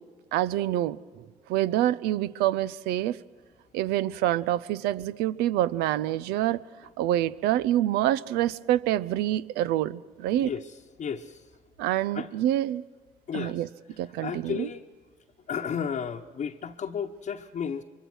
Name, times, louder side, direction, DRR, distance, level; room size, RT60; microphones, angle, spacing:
voice 1, 0.3-3.2 3.7-6.6 7.0-10.5 11.8-12.8 13.3-13.7 14.0-14.7, right 13 dB, 80° right, 0.6 m, -26 dB
voice 2, 11.0-11.4 12.1-12.3 13.3-13.6 14.2-14.8 15.5-17.8, left 7 dB, 50° left, 1.1 m, -33 dB
24.0 x 23.5 x 6.3 m
hypercardioid pair, 55°, 16 cm